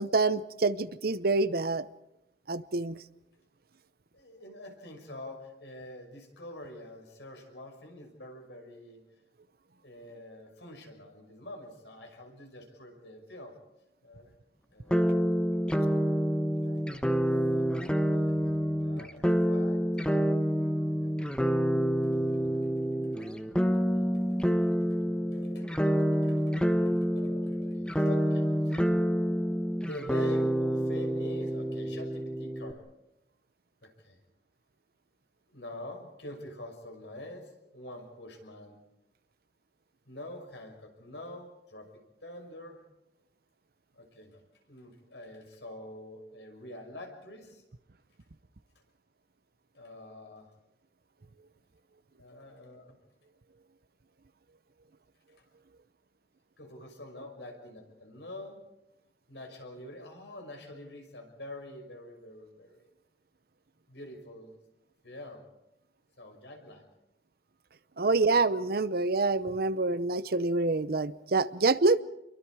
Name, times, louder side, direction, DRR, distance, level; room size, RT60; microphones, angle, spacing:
voice 1, 0.0-1.8 2.5-3.0 68.0-72.0, right 3 dB, 60° right, 16 dB, 0.8 m, -26 dB
voice 2, 4.1-9.0 9.8-13.6 14.0-14.4 14.7-15.3 16.5-17.0 17.3-17.9 18.1-19.9 20.6-21.6 22.0-23.5 23.9-28.9 29.8-32.8 33.8-34.2 35.5-38.8 40.0-41.9 42.2-42.8 43.9-44.4 44.7-47.6 49.7-50.5 52.2-53.0 56.6-58.6 59.3-62.9 63.9-64.6 65.0-65.5 66.2-66.8, left 1 dB, 85° left, 3 dB, 6.1 m, -46 dB
sound 1, 14.9-32.7, equal, 5° left, 1.2 m, -28 dB
28.5 x 23.0 x 4.9 m, 0.91 s
head